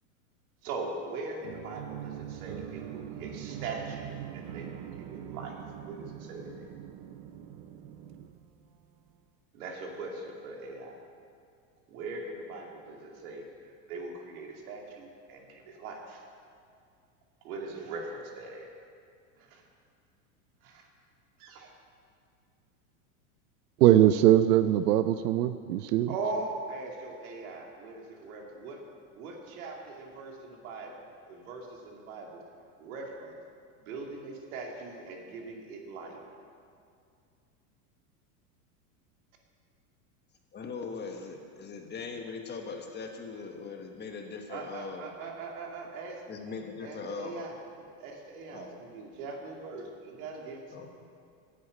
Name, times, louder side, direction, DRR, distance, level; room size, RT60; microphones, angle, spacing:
voice 1, 0.6-5.5 5.8-6.7 9.5-11.0 11.9-16.2 17.4-18.7 19.4-19.6 20.6-20.9 21.4-21.7 26.1-28.8 29.1-33.4 33.8-34.0 34.5-36.2 44.5-46.2 46.8-50.6, right 3 dB, 70° right, 1 dB, 2.7 m, -41 dB
sound 1, 1.4-9.0, right 10 dB, 50° right, 0.7 m, -42 dB
voice 2, 23.8-26.1, right 12 dB, 90° right, 12 dB, 0.6 m, -21 dB
voice 3, 40.5-45.1 46.3-47.4 48.5-48.7 50.7-50.9, left 4 dB, 20° left, 3 dB, 1.4 m, -40 dB
11.5 x 8.5 x 8.3 m, 2.3 s
supercardioid pair, 125°, 45 cm